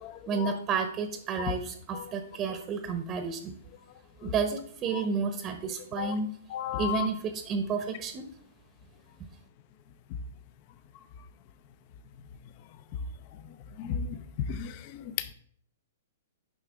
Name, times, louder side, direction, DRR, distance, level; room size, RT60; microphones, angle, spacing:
voice 1, 0.3-3.5 4.2-6.3 6.7-8.3, right 5 dB, 30° right, 0.8 m, -31 dB
voice 2, 6.5-7.1 13.8-14.1 14.5-15.0, left 8 dB, 45° left, 0.6 m, -33 dB
9.5 x 5.7 x 3.5 m
hypercardioid pair, 115°, 0 cm